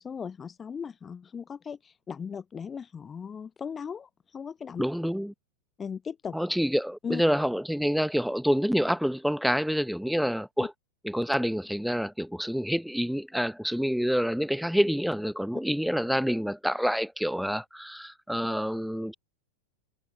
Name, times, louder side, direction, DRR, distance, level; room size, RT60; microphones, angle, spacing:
voice 1, 0.0-4.8 5.8-6.4 7.0-7.2 10.6-10.7, left 6 dB, 20° left, 0.6 m, -37 dB
voice 2, 4.8-5.3 6.3-10.7 11.0-19.1, equal, ahead, 1.0 m, -27 dB
figure-of-eight pair, 90°, 0 cm